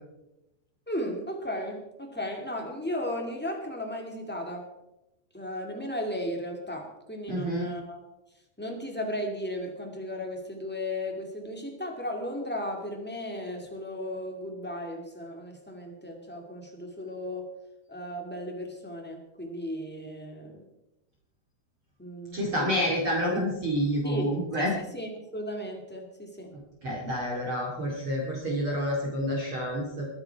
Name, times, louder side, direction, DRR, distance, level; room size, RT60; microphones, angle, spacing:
voice 1, 0.9-4.6 5.3-8.0 8.6-17.5 17.9-20.6 22.0-22.8 24.0-24.3 24.6-26.5, left 1 dB, 10° left, 1 dB, 0.6 m, -35 dB
voice 2, 7.3-7.7 22.3-24.8 26.5-30.1, equal, 35° right, -3 dB, 2.8 m, -29 dB
22.5 x 9.6 x 4.6 m, 0.92 s
omnidirectional pair, 4.6 m